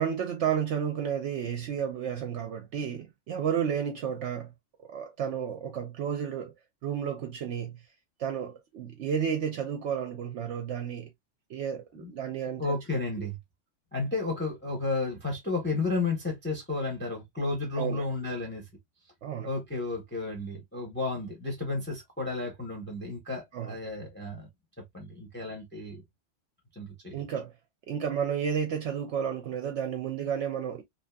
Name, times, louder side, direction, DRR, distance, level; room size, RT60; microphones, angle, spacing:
voice 1, 0.0-4.5 4.9-6.5 6.8-7.8 8.2-11.1 11.5-12.8 13.2-13.3 17.8-18.1 19.2-19.5 23.5-23.8 27.1-27.5 27.9-30.8, right 8 dB, 70° right, 0.9 m, -32 dB
voice 2, 12.6-13.4 13.9-18.6 19.4-24.5 24.9-26.0 26.8-27.2, left 3 dB, 10° left, 0.7 m, -32 dB
2.8 x 2.5 x 2.2 m
omnidirectional pair, 1.3 m